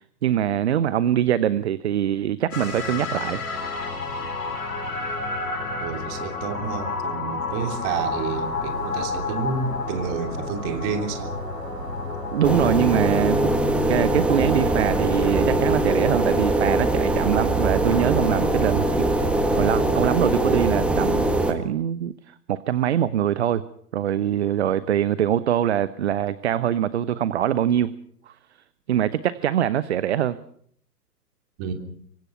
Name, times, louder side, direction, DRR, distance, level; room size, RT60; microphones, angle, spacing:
voice 1, 0.0-3.4 12.3-13.5 13.9-23.6 23.9-27.9 28.3-28.4 28.9-30.4, right 10 dB, 40° right, 17 dB, 0.9 m, -23 dB
sound 1, 2.5-12.6, left 4 dB, 65° left, 6.2 m, -30 dB
voice 2, 5.8-11.4 31.6-31.7, right 6 dB, 25° right, 6 dB, 3.2 m, -29 dB
sound 2, 7.8-19.7, right 4 dB, 85° right, 4.3 m, -39 dB
sound 3, 12.4-21.5, right 1 dB, ahead, 1.5 m, -22 dB
26.0 x 24.0 x 5.9 m, 0.63 s
figure-of-eight pair, 125°, 48 cm